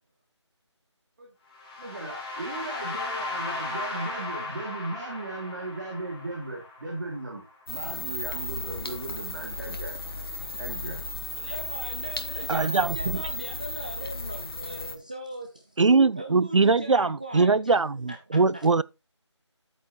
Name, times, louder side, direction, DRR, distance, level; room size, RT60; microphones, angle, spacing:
sound 1, 1.5-7.5, left 3 dB, 15° left, 1.9 m, -36 dB
voice 1, 1.8-9.9 10.6-11.0, right 2 dB, 40° right, 2.6 m, -36 dB
sound 2, 7.7-15.0, left 2 dB, 55° left, 1.2 m, -35 dB
voice 2, 11.3-15.8 16.2-17.8 18.1-18.7, right 1 dB, 15° right, 0.5 m, -39 dB
voice 3, 12.5-13.2 15.8-18.8, right 4 dB, 85° right, 0.5 m, -22 dB
10.0 x 8.5 x 3.0 m
figure-of-eight pair, 165°, 15 cm